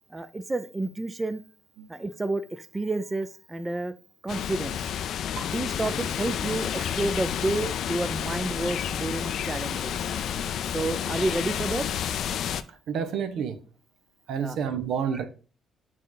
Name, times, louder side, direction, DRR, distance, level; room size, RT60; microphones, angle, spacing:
voice 1, 0.1-1.4 1.9-3.9 4.2-4.8 5.4-10.3 10.7-11.9 14.4-14.6, right 2 dB, 20° right, 0.5 m, -30 dB
sound 1, 4.3-12.6, left 9 dB, 70° left, 0.4 m, -30 dB
voice 2, 12.9-13.6 14.3-15.3, right 7 dB, 80° right, 0.8 m, -29 dB
7.5 x 3.2 x 3.9 m
cardioid pair, 90°, 0 cm